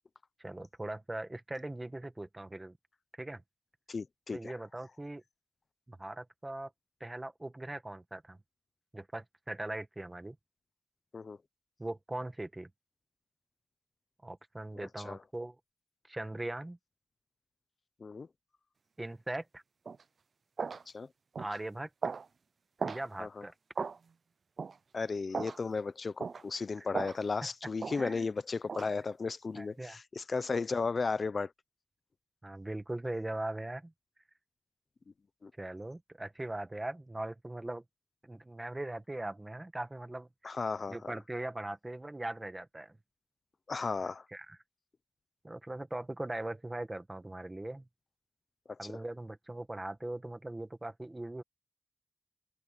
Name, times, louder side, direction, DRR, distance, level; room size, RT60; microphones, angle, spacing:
voice 1, 0.4-2.7 3.2-3.4 4.3-5.2 5.9-6.7 7.0-8.4 8.9-10.3 11.8-12.7 14.2-15.6 16.1-16.8 19.0-19.6 21.4-21.9 22.8-23.5 26.8-26.9 28.0-28.3 29.5-30.0 32.4-33.9 35.6-37.8 38.2-40.5 40.9-43.0 44.3-44.6 45.4-47.8 48.8-51.4, right 1 dB, 20° right, 1.6 m, -40 dB
voice 2, 3.9-4.5 11.1-11.4 14.7-15.2 18.0-18.3 20.9-21.1 23.2-23.4 24.9-31.5 35.4-35.5 40.4-41.1 43.7-44.3 48.7-48.9, left 4 dB, 50° left, 0.6 m, -35 dB
sound 1, 19.9-20.0 20.6-20.8 21.4-21.6 22.0-22.3 22.8-23.0 23.8-24.0 24.6-24.8 25.3-25.6 26.2-26.4 26.9-27.2 27.8-28.0 28.7-28.9, right 5 dB, 60° right, 0.4 m, -36 dB
wide cardioid pair, 90°, 0 cm